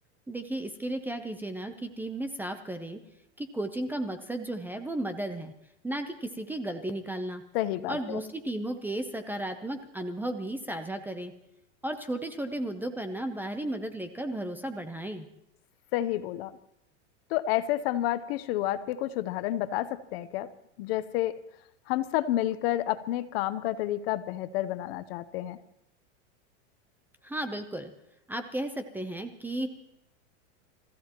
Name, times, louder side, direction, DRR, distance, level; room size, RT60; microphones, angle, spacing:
voice 1, 0.3-3.0 3.4-5.5 5.8-7.4 7.9-11.3 11.8-15.3 27.2-27.9 28.3-29.7, right 1 dB, 5° right, 8 dB, 0.6 m, -34 dB
voice 2, 7.5-8.2 15.9-16.5 17.3-20.5 20.8-21.4 21.9-25.6, left 14 dB, 55° left, 13 dB, 0.8 m, -30 dB
28.0 x 14.5 x 3.0 m, 0.80 s
supercardioid pair, 135°, 36 cm